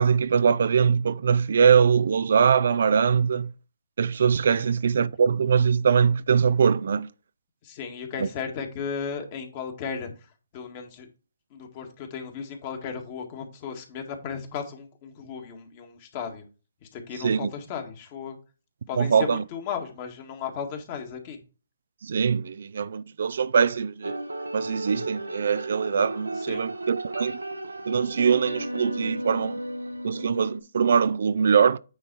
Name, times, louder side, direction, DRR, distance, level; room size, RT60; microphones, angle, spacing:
voice 1, 0.0-3.5 4.0-7.1 8.2-8.3 17.2-17.5 18.9-19.4 22.0-24.2 24.5-27.4 27.9-29.6 30.0-31.8, right 6 dB, 60° right, 0.4 m, -22 dB
voice 2, 7.6-10.1 10.5-11.1 11.5-16.4 16.8-18.4 18.9-21.4 26.5-26.6, left 6 dB, 35° left, 1.9 m, -35 dB
sound 1, 24.0-30.6, right 1 dB, 85° right, 1.1 m, -34 dB
9.4 x 4.2 x 4.6 m
figure-of-eight pair, 140°, 0 cm